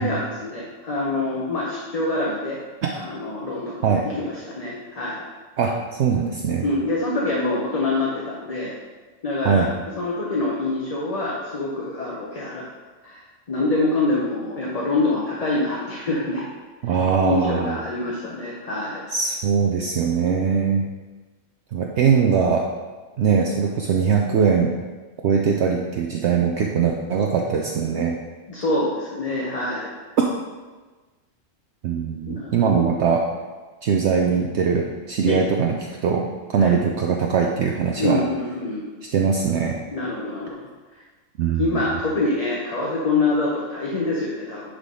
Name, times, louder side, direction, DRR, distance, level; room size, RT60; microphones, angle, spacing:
voice 1, 0.0-2.6 2.9-3.8 4.2-5.2 6.6-8.7 9.2-9.7 10.0-12.7 13.0-13.2 13.5-16.4 17.2-19.0 28.5-29.9 32.3-32.8 35.2-35.4 36.6-36.7 38.0-38.8 39.9-40.5 41.6-44.6, left 2 dB, 35° left, -4 dB, 0.8 m, -25 dB
voice 2, 5.6-6.7 9.4-9.7 16.8-17.8 19.1-20.8 21.7-22.7 23.2-24.8 25.2-28.1 30.2-30.3 31.8-33.2 33.8-35.8 36.0-36.3 36.5-38.2 39.1-39.8 41.4-41.9, right 6 dB, 65° right, 1 dB, 0.8 m, -21 dB
9.9 x 3.7 x 3.7 m, 1.3 s
omnidirectional pair, 1.4 m